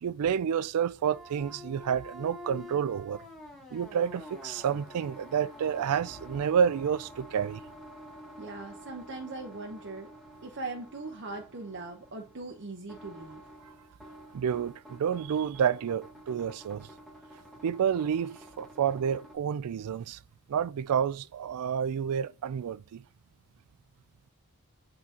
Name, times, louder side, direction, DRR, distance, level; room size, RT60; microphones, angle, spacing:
voice 1, 0.0-3.2 3.7-7.6 14.3-16.9 17.6-20.2 20.5-23.0, right 8 dB, 80° right, 0.3 m, -29 dB
sound 1, 1.0-19.3, left 1 dB, ahead, 1.5 m, -49 dB
voice 2, 8.4-10.1 10.4-13.4, right 3 dB, 55° right, 0.9 m, -40 dB
8.6 x 3.9 x 2.9 m
head